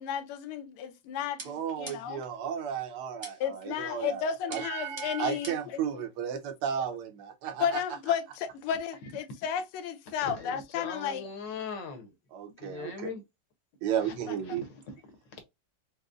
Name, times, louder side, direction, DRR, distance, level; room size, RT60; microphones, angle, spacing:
voice 1, 0.0-2.2 3.4-6.0 7.6-11.2 14.3-14.4, left 8 dB, 85° left, 1.5 m, -33 dB
sound 1, 1.4-2.3 3.2-3.7 4.5-5.8, right 1 dB, 30° right, 0.5 m, -45 dB
voice 2, 1.4-7.8 12.3-13.1 13.8-14.6, right 8 dB, 85° right, 1.7 m, -34 dB
voice 3, 10.2-12.1 12.6-13.2 14.0-14.1 14.5-14.6 15.1-15.4, left 5 dB, 65° left, 1.3 m, -40 dB
5.1 x 2.0 x 2.3 m
omnidirectional pair, 2.4 m